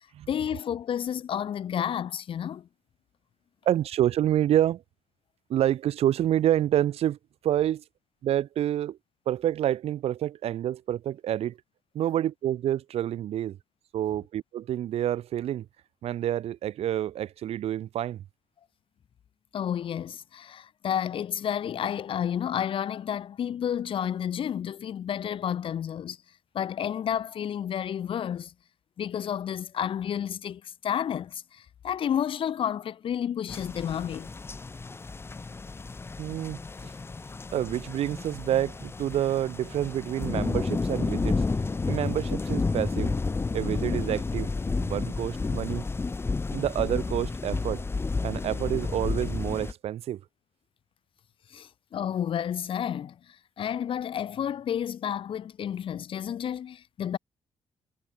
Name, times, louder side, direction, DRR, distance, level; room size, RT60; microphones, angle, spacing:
voice 1, 0.3-2.7 19.5-26.2 26.5-28.5 29.0-34.3 51.5-57.2, left 9 dB, 60° left, 0.7 m, -31 dB
voice 2, 3.6-4.8 5.5-7.2 7.4-7.8 8.2-9.0 9.3-11.6 11.9-13.6 13.9-15.7 16.0-18.2 36.2-36.9 37.5-41.4 41.9-43.1 43.5-44.5 44.8-45.8 46.5-47.8 48.2-50.2, right 11 dB, 85° right, 1.3 m, -28 dB
sound 1, 33.5-49.7, left 3 dB, 25° left, 1.0 m, -31 dB
cardioid pair, 110°, 10 cm